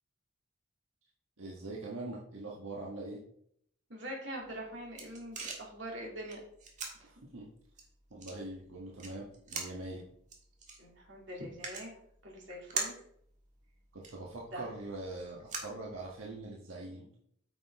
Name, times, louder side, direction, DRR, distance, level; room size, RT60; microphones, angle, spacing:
voice 1, 1.4-3.2 7.3-7.5 8.1-10.0 13.9-17.1, right 2 dB, 90° right, -3 dB, 1.4 m, -43 dB
voice 2, 3.9-6.4 7.0-7.1 10.8-11.9 12.2-13.0 14.5-14.7, right 1 dB, 60° right, -2 dB, 2.7 m, -43 dB
sound 1, 4.4-16.5, right 4 dB, 35° right, 1.6 m, -45 dB
8.8 x 6.1 x 3.6 m, 0.68 s
head